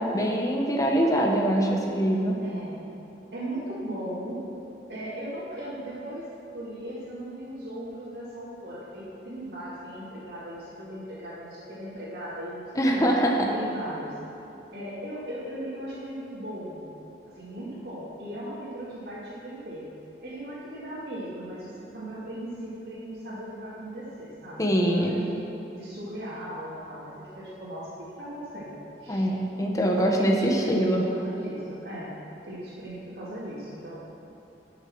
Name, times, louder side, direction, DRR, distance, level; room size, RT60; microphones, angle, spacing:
voice 1, 0.0-2.4 12.7-13.5 24.6-25.2 29.1-31.0, right 1 dB, 20° left, 0 dB, 1.1 m, -23 dB
voice 2, 2.4-2.8 3.3-4.4 4.9-6.3 6.5-12.7 12.9-13.1 13.5-14.1 14.7-16.8 17.3-19.9 20.2-25.4 25.7-29.2 29.8-32.1 32.4-34.0, equal, 65° right, -12 dB, 2.5 m, -37 dB
11.0 x 6.9 x 6.2 m, 3.0 s
head